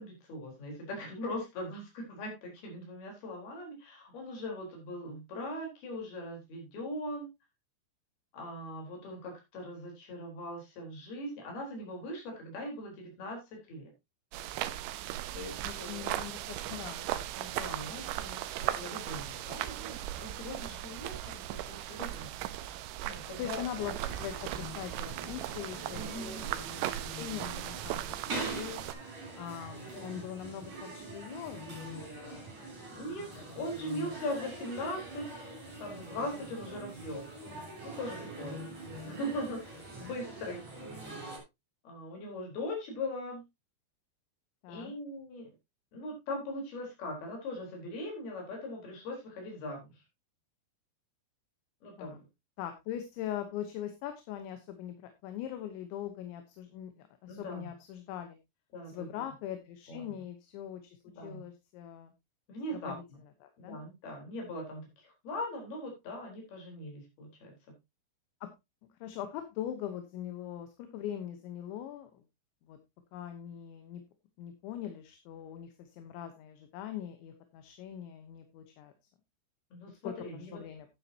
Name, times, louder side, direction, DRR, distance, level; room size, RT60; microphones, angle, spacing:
voice 1, 0.0-7.3 8.3-13.9 15.3-16.0 17.4-22.7 23.0-23.7 25.9-26.5 29.9-30.3 33.0-35.5 35.8-38.6 39.0-40.6 41.8-43.4 44.7-45.5 45.9-50.0 51.8-52.2 57.3-57.7 58.7-59.1 59.9-60.1 61.1-61.4 62.5-63.0 63.7-67.6 79.7-80.6, left 1 dB, 50° left, 0 dB, 5.8 m, -40 dB
sound 1, 14.3-28.9, right 13 dB, 80° right, 3.0 m, -38 dB
voice 2, 15.6-17.1 20.7-20.8 23.4-28.9 29.4-32.4 32.9-33.0 33.3-33.7 44.6-44.9 52.0-52.2 52.6-58.4 58.9-60.8 61.2-62.1 62.7-63.0 63.4-63.8 68.4-68.5 69.0-72.2 72.7-72.8 73.1-74.0 74.4-78.9 80.0-80.9, left 10 dB, 75° left, 7 dB, 3.2 m, -42 dB
sound 2, 23.8-41.4, right 2 dB, 35° right, 6.2 m, -44 dB
12.5 x 9.6 x 2.8 m, 0.23 s
omnidirectional pair, 5.7 m